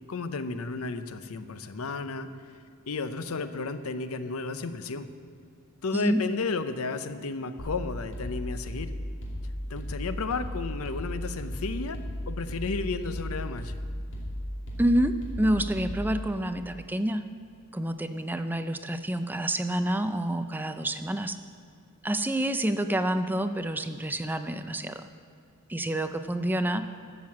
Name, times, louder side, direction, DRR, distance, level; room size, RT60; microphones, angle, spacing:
voice 1, 0.1-2.3 2.9-5.1 5.8-8.9 9.7-12.0 12.3-13.7, left 4 dB, 85° left, 11 dB, 0.6 m, -33 dB
voice 2, 5.9-6.2 14.8-17.2 17.7-21.4 22.0-25.1 25.7-26.9, right 1 dB, 10° right, 9 dB, 0.4 m, -28 dB
sound 1, 7.6-16.3, equal, 60° left, 2.6 m, -35 dB
12.0 x 7.6 x 7.3 m, 2.4 s
head